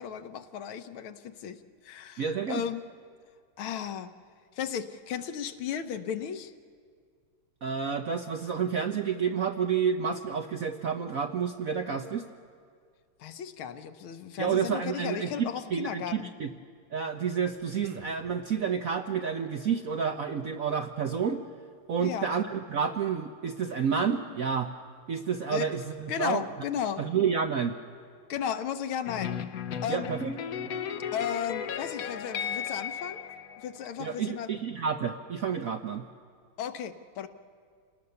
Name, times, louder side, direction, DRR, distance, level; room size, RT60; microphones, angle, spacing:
voice 1, 0.0-2.8 3.6-4.1 4.5-6.5 13.2-16.3 22.0-22.3 25.5-25.7 26.1-27.0 28.3-29.4 29.8-30.1 31.1-33.2 33.6-34.5 36.6-37.3, left 8 dB, 75° left, 9 dB, 1.7 m, -35 dB
voice 2, 2.2-2.6 7.6-12.2 14.4-16.5 16.9-21.4 21.9-24.7 25.1-26.4 27.0-27.8 29.9-30.3 34.0-36.0, right 6 dB, 65° right, 6 dB, 0.8 m, -30 dB
sound 1, 17.2-18.9, right 7 dB, 85° right, 2.3 m, -46 dB
sound 2, 29.0-34.1, left 8 dB, 60° left, 0.9 m, -35 dB
27.5 x 18.5 x 6.9 m, 2.1 s
omnidirectional pair, 2.3 m